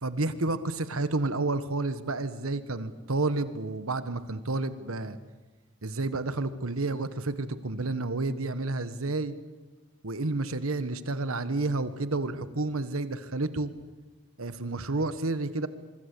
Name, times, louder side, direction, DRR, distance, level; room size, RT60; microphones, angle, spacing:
voice 1, 0.0-5.2 5.8-9.3 10.0-13.7 14.4-15.7, right 2 dB, 90° right, 12 dB, 1.4 m, -30 dB
25.5 x 24.5 x 8.5 m, 1.2 s
head